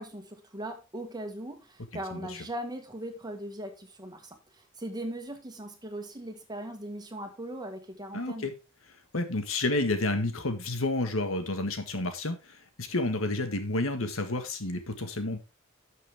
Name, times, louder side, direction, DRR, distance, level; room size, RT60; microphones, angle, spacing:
voice 1, 0.0-8.5, right 1 dB, 20° right, 6 dB, 1.7 m, -39 dB
voice 2, 2.1-2.4 8.1-8.5 9.1-15.4, left 2 dB, 80° left, 7 dB, 1.7 m, -30 dB
12.0 x 6.5 x 3.6 m, 0.28 s
head